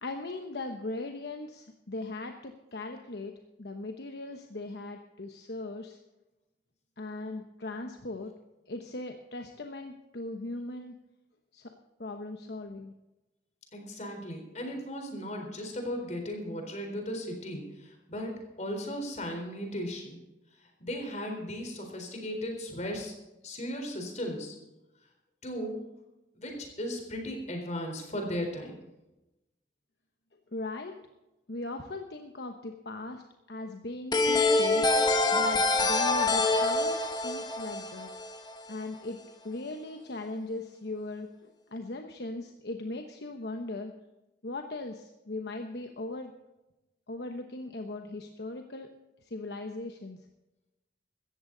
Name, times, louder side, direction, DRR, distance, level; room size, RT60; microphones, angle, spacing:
voice 1, 0.0-3.3 3.6-6.0 7.0-8.3 8.7-10.9 11.5-11.7 12.0-12.9 30.5-30.9 31.5-33.2 33.5-34.8 35.3-37.0 37.2-38.1 38.7-39.2 39.4-43.9 44.4-46.3 47.1-48.9 49.3-50.2, left 2 dB, 65° left, 4 dB, 1.1 m, -39 dB
voice 2, 13.7-18.3 18.6-20.2 20.8-23.1 23.4-24.6 25.4-25.8 26.3-28.7, equal, 40° left, 2 dB, 4.0 m, -36 dB
sound 1, 34.1-38.7, left 2 dB, 25° left, 1.3 m, -26 dB
16.5 x 14.0 x 4.0 m, 0.99 s
head